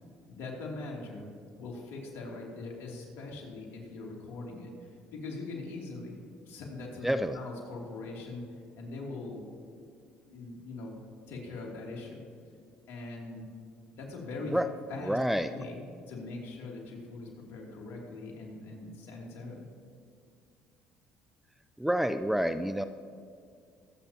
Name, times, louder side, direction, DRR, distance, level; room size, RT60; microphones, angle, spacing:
voice 1, 0.3-1.3 1.6-8.4 8.7-9.4 10.2-11.0 11.3-12.2 12.9-13.5 13.9-14.6 14.9-15.2 15.5-19.7, left 3 dB, 70° left, -1 dB, 2.8 m, -42 dB
voice 2, 7.0-7.4 14.5-14.6 15.0-15.5 21.8-22.8, equal, 5° right, 11 dB, 0.4 m, -28 dB
23.0 x 8.3 x 2.9 m, 2.2 s
supercardioid pair, 70°, 4 cm